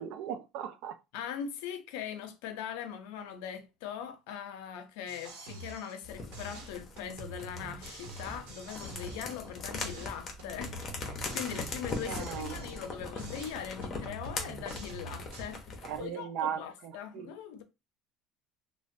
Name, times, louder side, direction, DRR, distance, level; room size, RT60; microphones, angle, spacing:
voice 1, 0.0-1.0 12.1-12.7 15.8-17.3, right 9 dB, 65° right, 0.4 m, -37 dB
voice 2, 1.1-17.6, left 8 dB, 85° left, 0.5 m, -41 dB
sound 1, 5.1-6.1 6.3-9.5 9.7-12.9 13.2-15.6, right 2 dB, 90° right, 0.9 m, -46 dB
sound 2, 6.0-16.1, left 3 dB, 30° left, 0.8 m, -41 dB
2.9 x 2.1 x 2.6 m
cardioid pair, 140°, 0 cm